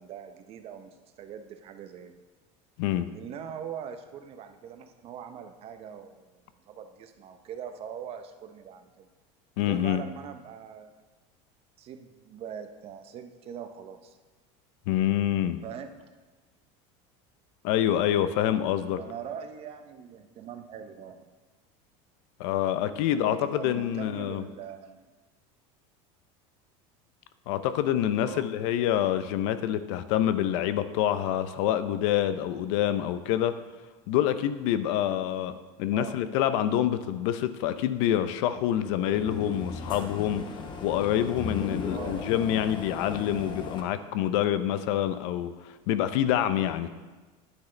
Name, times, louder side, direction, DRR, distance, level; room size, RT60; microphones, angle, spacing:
voice 1, 0.0-2.2 3.1-9.1 9.6-10.9 11.8-14.2 15.6-16.0 19.0-21.3 23.1-25.0 28.2-28.5 35.9-36.2 41.9-42.3, right 8 dB, 40° right, 7 dB, 0.7 m, -42 dB
voice 2, 9.6-10.0 14.9-15.6 17.6-19.0 22.4-24.4 27.5-33.6 34.1-35.5 35.8-40.4 40.8-45.5 45.9-46.9, left 11 dB, 75° left, 12 dB, 0.6 m, -26 dB
sound 1, 38.8-43.8, left 4 dB, 30° left, 0.8 m, -37 dB
9.9 x 7.9 x 3.3 m, 1.3 s
supercardioid pair, 140°, 16 cm